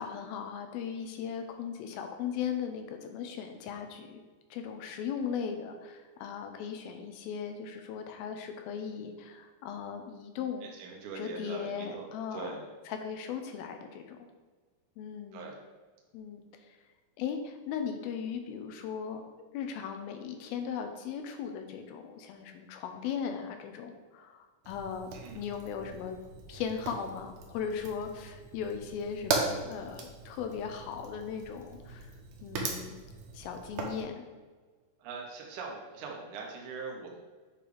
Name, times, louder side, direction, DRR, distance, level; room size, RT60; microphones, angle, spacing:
voice 1, 0.0-4.2 4.5-10.7 11.1-12.5 12.9-14.3 15.0-15.5 16.1-16.8 17.2-19.2 19.5-26.2 26.5-32.1 32.4-33.0 33.3-34.2, left 7 dB, 85° left, 5 dB, 2.6 m, -38 dB
voice 2, 10.6-12.7 15.3-15.6 25.1-25.4 35.0-37.2, right 4 dB, 70° right, -1 dB, 2.0 m, -42 dB
Fire, 24.6-34.0, right 4 dB, 85° right, 1.5 m, -39 dB
8.6 x 3.2 x 4.9 m, 1.4 s
omnidirectional pair, 4.3 m